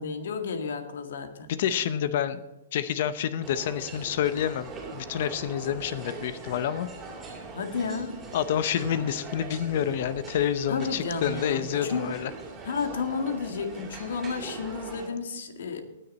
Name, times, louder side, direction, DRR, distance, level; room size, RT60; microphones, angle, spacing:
voice 1, 0.0-1.5 7.5-8.2 10.7-12.1 12.6-15.8, left 5 dB, 75° left, 7 dB, 1.9 m, -32 dB
voice 2, 1.5-2.4 2.7-6.9 8.3-12.3, left 10 dB, 50° left, 14 dB, 0.7 m, -28 dB
sound 1, 3.4-15.1, right 3 dB, 15° right, 2.6 m, -41 dB
19.5 x 6.8 x 4.3 m, 1.0 s
hypercardioid pair, 155°, 0 cm